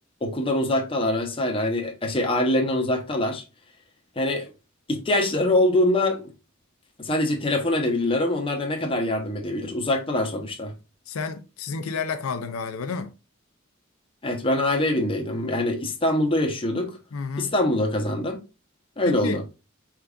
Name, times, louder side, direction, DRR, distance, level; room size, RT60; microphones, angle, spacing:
voice 1, 0.2-3.4 4.2-4.5 4.9-6.3 7.0-10.7 14.2-17.0 17.4-18.4 19.0-19.4, left 1 dB, 25° left, 0.8 m, -24 dB
voice 2, 11.1-13.1 17.1-17.5 19.0-19.4, left 5 dB, 80° left, 0.5 m, -30 dB
4.8 x 3.4 x 2.4 m
head